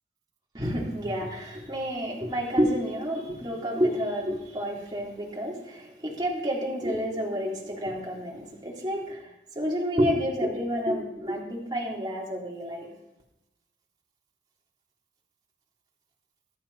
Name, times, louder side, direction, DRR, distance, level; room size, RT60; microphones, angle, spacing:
voice 1, 0.5-9.3 9.6-12.9, equal, 25° right, -4 dB, 3.8 m, -29 dB
21.5 x 13.5 x 4.4 m, 0.91 s
head